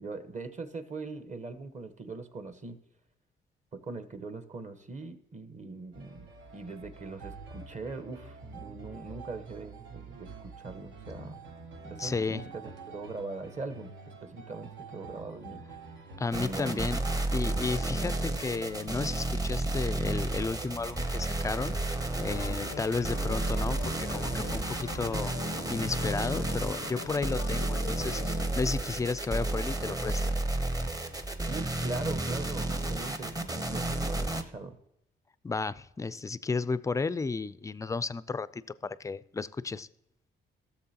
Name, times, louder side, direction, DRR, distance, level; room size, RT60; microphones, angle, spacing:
voice 1, 0.0-2.8 3.7-11.4 11.8-15.6 15.9-16.0 16.3-16.9 31.5-34.8, right 3 dB, 35° right, 1.1 m, -41 dB
sound 1, 5.9-25.1, right 4 dB, 80° right, 1.2 m, -46 dB
voice 2, 12.0-12.4 16.2-17.0 17.3-25.3 25.7-30.4 35.4-39.9, left 4 dB, 15° left, 0.3 m, -33 dB
sound 2, 16.3-34.4, right 2 dB, 20° right, 0.8 m, -32 dB
sound 3, 22.3-28.5, left 11 dB, 75° left, 0.4 m, -44 dB
14.5 x 6.9 x 2.9 m
cardioid pair, 90°, 20 cm